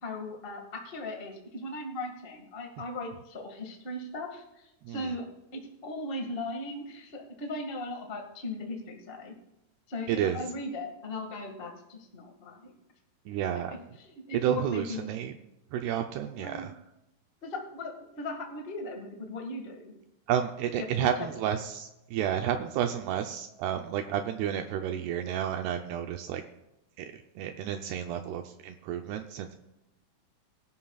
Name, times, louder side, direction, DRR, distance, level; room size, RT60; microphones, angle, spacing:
voice 1, 0.0-5.2 5.5-9.3 9.9-12.7 13.5-15.2 16.4-16.7 17.4-19.9 21.4-21.5, left 2 dB, 85° left, 1 dB, 0.5 m, -38 dB
voice 2, 10.1-10.4 13.3-13.8 14.4-15.3 15.7-16.7 20.3-26.4 27.0-27.1 27.4-29.6, right 9 dB, 80° right, 5 dB, 2.7 m, -31 dB
23.0 x 11.5 x 2.4 m, 0.93 s
omnidirectional pair, 4.8 m